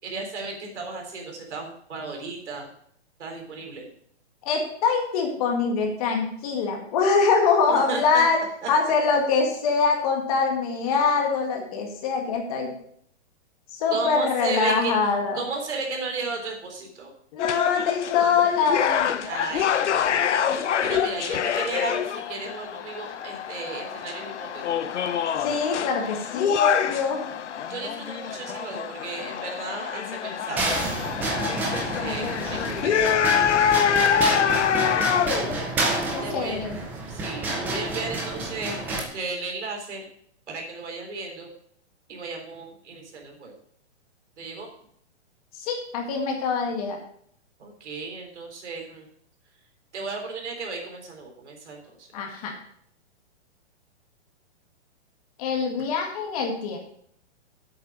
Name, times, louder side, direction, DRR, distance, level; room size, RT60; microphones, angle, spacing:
voice 1, 0.0-2.7 3.2-3.9 7.7-8.2 8.6-8.7 13.9-14.9 15.3-17.1 19.2-20.4 20.8-24.9 27.7-30.6 31.7-33.2 33.7-34.3 35.3-35.7 36.2-36.7 37.1-40.1 40.5-41.5 42.1-43.6 44.4-44.7 47.6-49.1 49.9-52.1, right 4 dB, 75° right, 2 dB, 3.8 m, -34 dB
voice 2, 4.5-8.4 8.7-12.7 13.7-15.4 17.3-19.2 25.4-27.2 35.3-35.6 36.1-36.8 45.6-47.0 52.1-52.5 55.4-56.8, left 5 dB, 30° left, 2 dB, 1.9 m, -24 dB
sound 1, 17.4-35.3, left 8 dB, 80° left, 1.0 m, -26 dB
sound 2, 30.6-39.0, right 2 dB, 5° right, 0.5 m, -29 dB
8.2 x 7.1 x 6.2 m, 0.65 s
hypercardioid pair, 165°, 34 cm